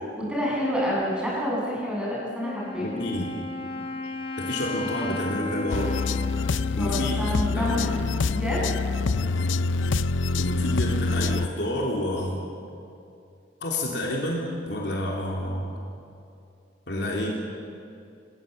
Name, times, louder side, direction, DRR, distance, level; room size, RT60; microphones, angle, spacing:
voice 1, 0.2-2.9 6.7-8.6, equal, 5° right, -5 dB, 7.7 m, -28 dB
Wind instrument woodwind instrument, 2.4-8.2, left 3 dB, 30° left, 1.3 m, -35 dB
voice 2, 2.8-3.3 4.4-5.9 6.8-8.0 10.3-12.4 13.6-15.7 16.9-17.3, left 1 dB, 65° left, -2 dB, 3.7 m, -29 dB
sound 1, 5.7-11.5, left 3 dB, 85° left, 0.6 m, -26 dB
29.0 x 20.0 x 8.2 m, 2.5 s
head